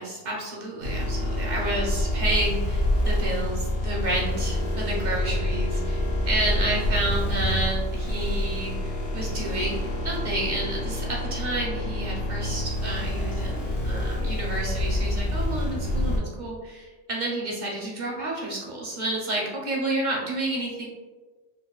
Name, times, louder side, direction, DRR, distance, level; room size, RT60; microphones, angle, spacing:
voice 1, 0.0-9.8 10.0-20.9, right 1 dB, 50° right, -3 dB, 0.5 m, -30 dB
sound 1, 0.8-16.2, left 1 dB, 80° left, 1.2 m, -27 dB
4.4 x 2.4 x 2.3 m, 1.3 s
omnidirectional pair, 1.3 m